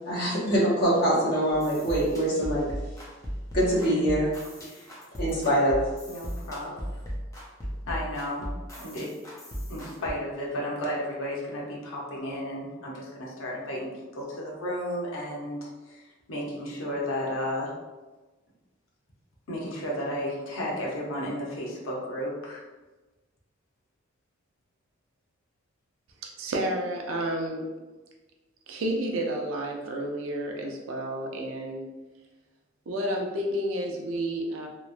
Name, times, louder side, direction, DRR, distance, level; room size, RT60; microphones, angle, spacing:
voice 1, 0.1-2.7 3.5-4.3 5.1-5.8, right 1 dB, 55° left, -6 dB, 1.0 m, -24 dB
sound 1, 1.5-10.1, equal, 15° left, 0.6 m, -37 dB
voice 2, 6.1-6.9 7.9-8.5 8.8-9.1 9.7-17.7 19.5-22.6, equal, 90° left, -3 dB, 0.7 m, -33 dB
voice 3, 26.4-27.7 28.7-31.9 32.9-34.7, right 1 dB, 90° right, 1 dB, 0.5 m, -30 dB
3.0 x 2.0 x 2.5 m, 1.2 s
head